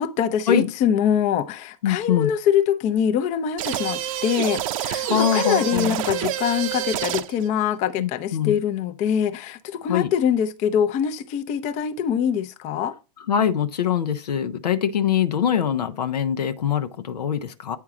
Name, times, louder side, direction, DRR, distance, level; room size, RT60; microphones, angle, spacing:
voice 1, 0.0-13.0, left 8 dB, 35° left, 0.7 m, -24 dB
voice 2, 1.8-2.3 5.0-6.0 8.0-8.6 9.9-10.1 13.3-17.8, left 9 dB, 90° left, 0.8 m, -23 dB
sound 1, 3.6-7.5, right 13 dB, 60° right, 0.7 m, -27 dB
8.7 x 4.6 x 3.7 m
hypercardioid pair, 120°, 20 cm